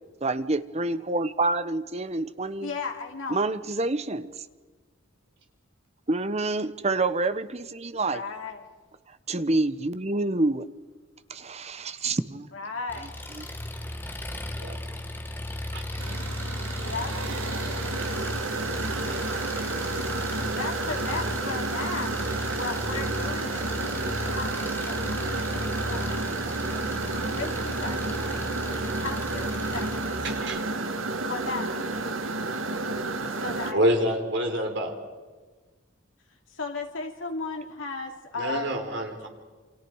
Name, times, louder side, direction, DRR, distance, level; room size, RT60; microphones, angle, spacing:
voice 1, 0.2-2.7 3.3-4.3 6.1-8.2 9.1-10.6 11.3-12.5 13.4-13.5 27.1-27.2, right 2 dB, 30° right, 13 dB, 1.0 m, -27 dB
voice 2, 2.6-3.4 7.9-8.6 12.5-13.2 16.8-17.1 20.5-26.4 27.3-28.4 28.7-30.2 31.2-32.0 33.4-33.8 36.5-38.8, left 3 dB, 75° left, 2 dB, 2.9 m, -36 dB
Engine, 12.9-30.4, left 1 dB, 10° left, 1.4 m, -35 dB
sound 1, 16.0-33.7, right 3 dB, 80° right, 1.6 m, -31 dB
voice 3, 30.2-30.6 33.7-34.9 38.3-39.3, equal, 60° right, 3 dB, 4.1 m, -27 dB
28.5 x 26.0 x 4.8 m, 1.3 s
head